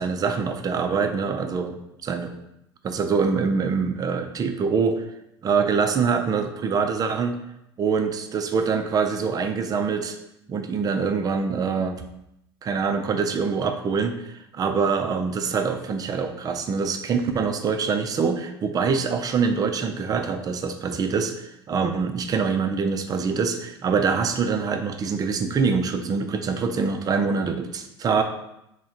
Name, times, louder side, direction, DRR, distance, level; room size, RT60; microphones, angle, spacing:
voice 1, 0.0-1.8 2.0-2.3 2.8-5.0 5.4-7.4 7.8-10.2 10.5-12.0 12.6-28.2, right 5 dB, 30° right, 6 dB, 0.4 m, -24 dB
3.4 x 2.2 x 4.2 m, 0.83 s
figure-of-eight pair, 70°, 14 cm